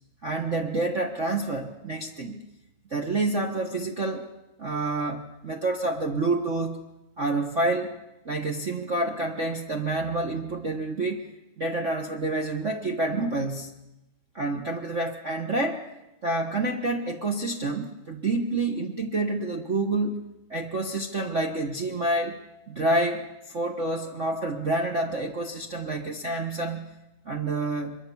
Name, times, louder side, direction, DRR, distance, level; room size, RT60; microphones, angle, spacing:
voice 1, 0.2-2.4 2.9-4.2 4.6-6.8 7.2-7.9 8.2-11.3 11.6-13.7 14.3-15.8 16.2-20.2 20.5-22.4 22.7-26.8 27.2-28.0, right 2 dB, 75° right, 0 dB, 0.6 m, -28 dB
24.0 x 23.0 x 7.1 m, 0.94 s
omnidirectional pair, 3.6 m